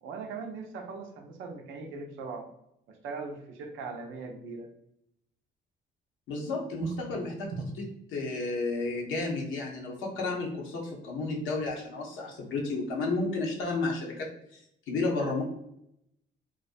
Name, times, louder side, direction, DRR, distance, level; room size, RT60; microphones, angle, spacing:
voice 1, 0.0-2.5 2.9-4.7 6.8-7.0 7.3-7.6, right 4 dB, 90° right, 3 dB, 0.5 m, -39 dB
voice 2, 6.3-7.3 7.8-7.9 8.1-14.3 14.9-15.4, left 3 dB, 85° left, -1 dB, 0.7 m, -32 dB
2.4 x 2.2 x 2.5 m, 0.76 s
cardioid pair, 90°, 20 cm